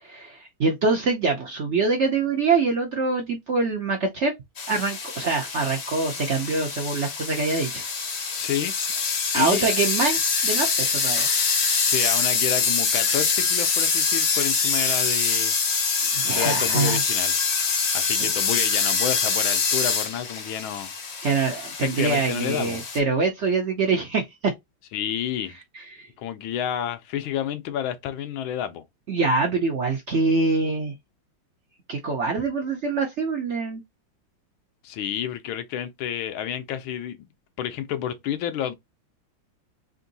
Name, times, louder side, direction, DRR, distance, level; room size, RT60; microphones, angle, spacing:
voice 1, 0.0-4.3 4.7-7.8 9.3-11.3 16.1-17.0 18.2-18.3 21.2-24.5 25.7-26.1 29.1-30.9 31.9-33.8, right 4 dB, 70° right, 0.6 m, -24 dB
sound 1, 4.6-23.0, left 5 dB, 55° left, 0.7 m, -25 dB
voice 2, 8.3-8.8 9.3-9.6 11.8-15.5 16.3-17.5 17.9-20.9 21.8-22.8 24.9-25.6 26.2-28.8 34.8-37.2 37.6-38.7, left 10 dB, 85° left, 1.5 m, -29 dB
3.7 x 2.6 x 3.9 m
omnidirectional pair, 2.2 m